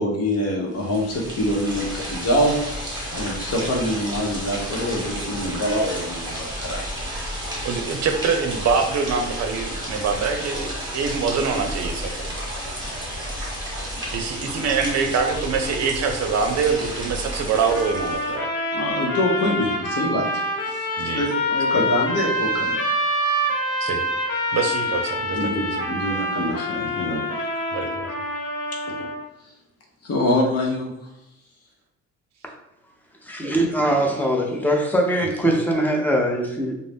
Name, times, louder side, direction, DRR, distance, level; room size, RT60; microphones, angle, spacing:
voice 1, 0.0-7.1 18.7-20.3 20.7-22.8 23.2-23.5 24.5-24.6 25.3-27.2 30.0-30.9, left 1 dB, 55° left, -1 dB, 0.9 m, -25 dB
sound 1, 0.7-18.4, equal, 15° right, 1.2 m, -32 dB
voice 2, 7.6-12.3 14.1-18.5 21.0-21.2 23.8-24.0 24.5-25.4 27.7-28.1, right 5 dB, 60° right, 5 dB, 0.5 m, -24 dB
sound 2, 17.7-29.2, left 1 dB, 90° left, 0.7 m, -26 dB
voice 3, 33.2-36.7, right 1 dB, 5° left, 0 dB, 0.6 m, -21 dB
2.6 x 2.0 x 3.4 m, 0.87 s
cardioid pair, 90°, 30 cm